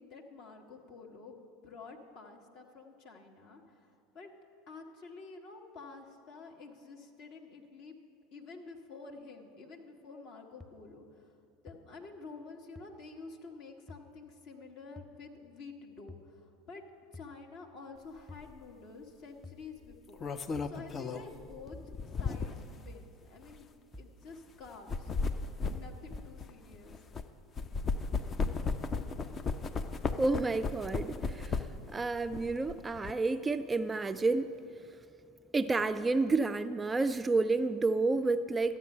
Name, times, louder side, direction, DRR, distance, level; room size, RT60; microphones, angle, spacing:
voice 1, 0.0-4.3 4.7-8.0 8.3-11.3 11.6-16.8 17.1-20.3 20.6-25.1 25.7-27.0, left 4 dB, 50° left, 2 dB, 1.5 m, -50 dB
sound 1, 10.6-10.7 11.7-11.8 12.8-12.9 13.9-14.0 15.0-15.1 16.1-16.3 17.1-17.4 18.3-18.5 19.4-19.7 20.6-20.8 21.7-21.9 22.9-23.1 23.9-24.2 25.1-25.3 26.1-26.3, left 2 dB, ahead, 0.8 m, -49 dB
sound 2, 18.4-18.6 19.9-22.7 23.4-23.6 24.7-27.2 27.6-31.9 32.3-33.1, left 4 dB, 30° left, 0.6 m, -35 dB
voice 2, 30.2-31.6 31.9-34.5 35.5-38.8, right 3 dB, 20° right, 12 dB, 0.3 m, -30 dB
13.0 x 8.7 x 5.5 m, 2.5 s
figure-of-eight pair, 75°, 0 cm